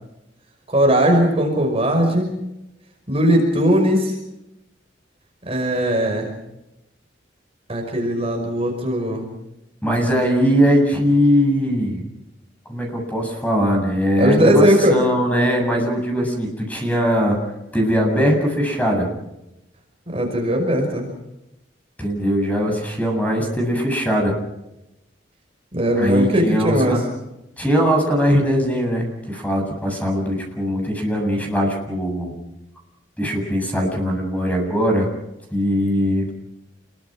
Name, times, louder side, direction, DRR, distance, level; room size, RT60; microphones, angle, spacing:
voice 1, 0.7-2.3 3.1-4.1 5.5-6.3 7.7-9.3 14.2-15.0 20.1-21.1 25.7-27.0, equal, 30° right, 2 dB, 5.5 m, -18 dB
voice 2, 9.8-12.1 12.7-17.4 17.7-19.1 22.0-24.3 25.9-27.0 27.6-32.3 33.2-35.1 35.5-36.3, equal, 10° left, 2 dB, 7.7 m, -20 dB
28.5 x 23.0 x 6.2 m, 0.90 s
head